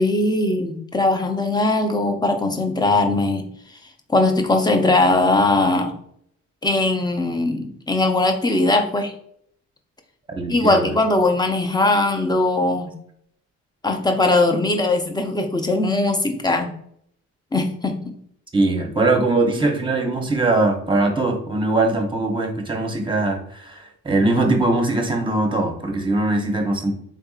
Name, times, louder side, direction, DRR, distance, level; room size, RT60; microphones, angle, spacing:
voice 1, 0.0-3.4 4.1-5.9 6.6-9.1 10.5-12.9 13.8-16.7 17.5-18.1, left 2 dB, 15° left, 4 dB, 0.6 m, -20 dB
voice 2, 10.3-10.9 18.5-26.9, right 2 dB, 15° right, 3 dB, 0.8 m, -21 dB
3.6 x 3.5 x 2.4 m, 0.67 s
cardioid pair, 90°, 30 cm